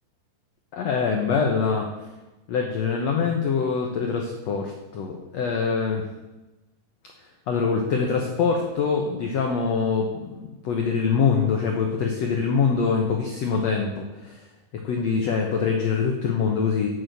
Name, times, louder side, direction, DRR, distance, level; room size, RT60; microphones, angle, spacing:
voice 1, 0.7-1.9 2.5-6.1 7.5-10.4 10.6-14.4 14.8-16.9, left 5 dB, 80° left, 1 dB, 1.5 m, -24 dB
9.0 x 6.4 x 7.7 m, 1.0 s
omnidirectional pair, 4.5 m